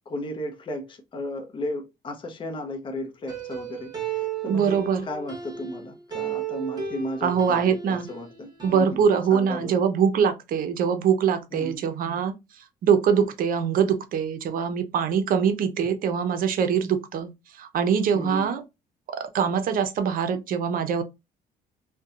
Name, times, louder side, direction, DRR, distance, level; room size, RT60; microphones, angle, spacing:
voice 1, 0.1-9.0 9.3-9.8 11.5-11.8 18.1-18.5, left 1 dB, 30° left, 0.6 m, -35 dB
sound 1, 3.3-5.9 6.1-8.3 8.6-8.9, right 7 dB, 25° right, 1.0 m, -34 dB
voice 2, 4.5-5.1 7.2-8.1 8.6-12.3 12.8-17.3 17.6-18.6 19.1-21.0, right 7 dB, 60° right, 0.6 m, -23 dB
2.7 x 2.2 x 2.4 m
cardioid pair, 110°, 17 cm